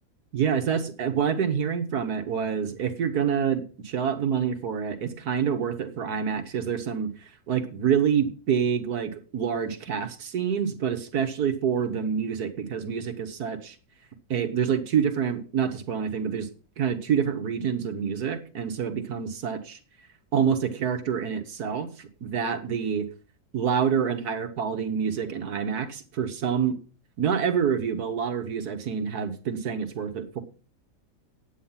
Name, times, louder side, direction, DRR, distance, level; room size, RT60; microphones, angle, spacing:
voice 1, 0.3-13.7 14.3-16.5 16.8-19.8 20.3-23.1 23.5-26.7 27.2-30.4, right 7 dB, 70° right, 7 dB, 1.6 m, -27 dB
10.0 x 8.7 x 5.7 m, 0.38 s
omnidirectional pair, 1.8 m